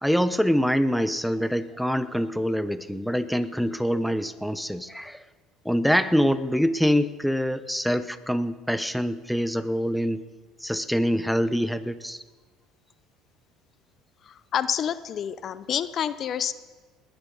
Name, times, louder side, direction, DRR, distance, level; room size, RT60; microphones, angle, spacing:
voice 1, 0.0-5.2 5.6-10.2 10.6-12.2, equal, ahead, 13 dB, 0.8 m, -25 dB
voice 2, 14.2-16.5, left 9 dB, 50° left, 15 dB, 0.6 m, -28 dB
21.0 x 10.5 x 5.5 m, 1.4 s
supercardioid pair, 85°, 0 cm